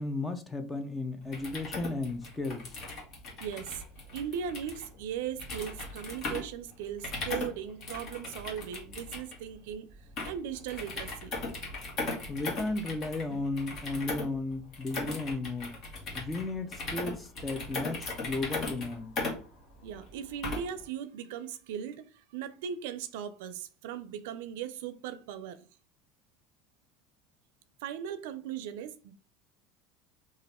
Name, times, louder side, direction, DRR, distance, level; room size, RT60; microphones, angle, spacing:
voice 1, 0.0-2.7 12.3-15.7 16.1-19.1, left 2 dB, 15° left, 0.6 m, -34 dB
sound 1, 1.2-20.8, left 3 dB, 45° left, 1.4 m, -39 dB
voice 2, 3.4-3.8 4.1-9.9 10.3-11.3 19.8-25.6 27.8-29.1, right 8 dB, 80° right, 0.5 m, -38 dB
3.1 x 2.4 x 4.2 m
supercardioid pair, 130°, 0 cm